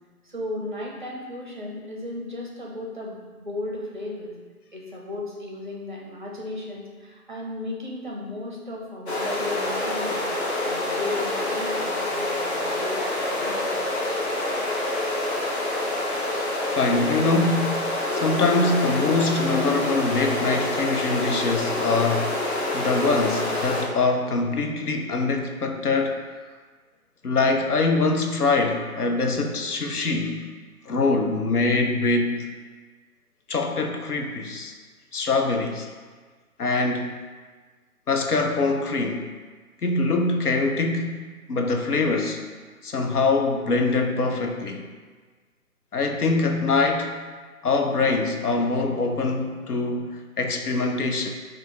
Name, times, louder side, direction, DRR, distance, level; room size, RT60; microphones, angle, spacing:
voice 1, 0.2-4.3 4.7-10.3 10.6-13.8, left 2 dB, 35° right, -2 dB, 0.6 m, -35 dB
sound 1, 9.1-23.8, left 1 dB, 45° left, 0.8 m, -27 dB
voice 2, 16.7-17.8 18.1-22.3 22.7-26.2 27.2-30.5 30.9-32.5 33.5-34.7 35.1-35.9 36.6-37.1 38.1-39.3 39.8-41.2 41.5-42.4 42.8-44.8 45.9-47.2 47.6-51.3, left 3 dB, 80° left, 4 dB, 0.7 m, -23 dB
3.6 x 2.5 x 4.4 m, 1.4 s
figure-of-eight pair, 150°, 45 cm